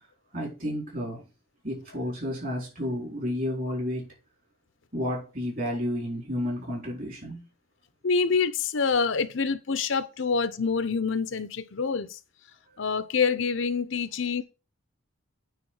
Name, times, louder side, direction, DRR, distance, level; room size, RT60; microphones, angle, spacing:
voice 1, 0.3-1.2 1.6-4.1 4.9-7.4, left 1 dB, 40° right, 4.3 m, -31 dB
voice 2, 8.0-12.2 12.8-14.4, left 5 dB, 60° left, 0.7 m, -26 dB
9.1 x 3.7 x 6.2 m
head